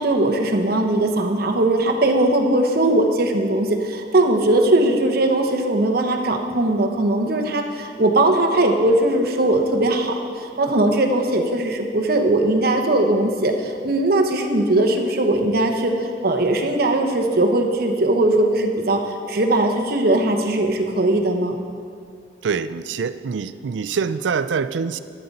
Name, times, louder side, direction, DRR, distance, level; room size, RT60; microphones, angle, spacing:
voice 1, 0.0-21.6, right 1 dB, 55° right, 4 dB, 1.0 m, -19 dB
voice 2, 22.4-25.0, right 5 dB, 90° right, 14 dB, 0.4 m, -25 dB
11.5 x 10.5 x 4.1 m, 2.3 s
head